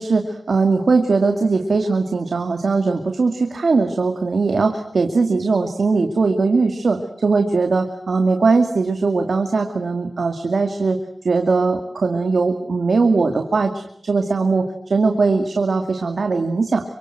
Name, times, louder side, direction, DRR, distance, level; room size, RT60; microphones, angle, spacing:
voice 1, 0.0-11.0 11.2-17.0, right 4 dB, 80° right, 5 dB, 2.4 m, -20 dB
28.5 x 25.0 x 7.9 m, 0.71 s
wide cardioid pair, 65°, 0 cm